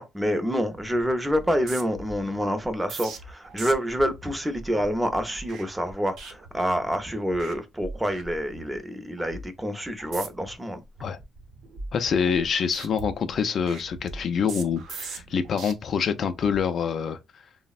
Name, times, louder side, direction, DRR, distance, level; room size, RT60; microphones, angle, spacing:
voice 1, 0.0-10.8, equal, 10° right, 0.6 m, -27 dB
sound 1, 0.7-1.0 1.3-7.0 7.3-7.6 7.8-8.8 9.2-9.5 10.0-10.5 11.0-12.5 12.7-15.7 16.3-16.6, right 3 dB, 80° right, 0.7 m, -41 dB
voice 2, 11.9-17.2, left 6 dB, 60° left, 0.3 m, -26 dB
3.3 x 2.0 x 2.3 m
cardioid pair, 90°, 0 cm